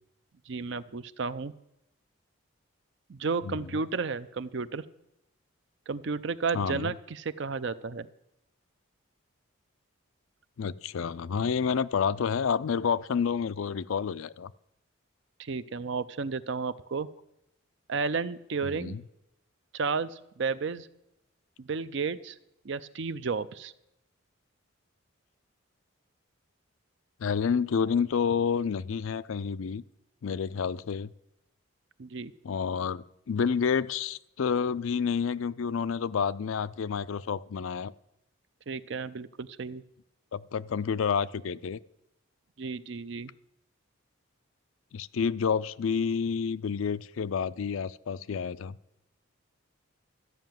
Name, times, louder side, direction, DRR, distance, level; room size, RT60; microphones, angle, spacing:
voice 1, 0.5-1.5 3.1-4.8 5.9-8.1 15.4-17.1 17.9-19.0 19.7-20.9 21.6-22.4 22.6-23.7 32.0-32.3 38.7-39.8 42.6-43.3, right 4 dB, 55° right, 14 dB, 0.5 m, -32 dB
voice 2, 6.5-6.9 10.6-14.5 18.6-19.0 27.2-29.8 30.2-31.1 32.4-37.9 40.3-41.8 44.9-48.8, left 6 dB, 70° left, 16 dB, 0.4 m, -29 dB
13.5 x 5.7 x 9.1 m, 0.83 s
head